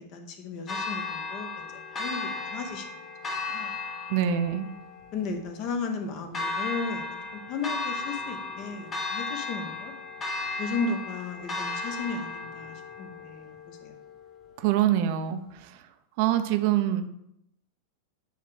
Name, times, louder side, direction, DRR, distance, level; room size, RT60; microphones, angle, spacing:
voice 1, 0.0-2.9 3.5-3.7 5.1-7.0 7.3-9.9 10.6-13.9, left 4 dB, 40° left, 6 dB, 0.9 m, -35 dB
Church bell, 0.7-14.7, left 3 dB, 25° left, 1.2 m, -35 dB
voice 2, 4.1-4.7 14.6-15.7 16.2-17.0, right 11 dB, 45° right, 8 dB, 0.6 m, -25 dB
8.3 x 3.3 x 4.7 m, 0.80 s
figure-of-eight pair, 90°, 0 cm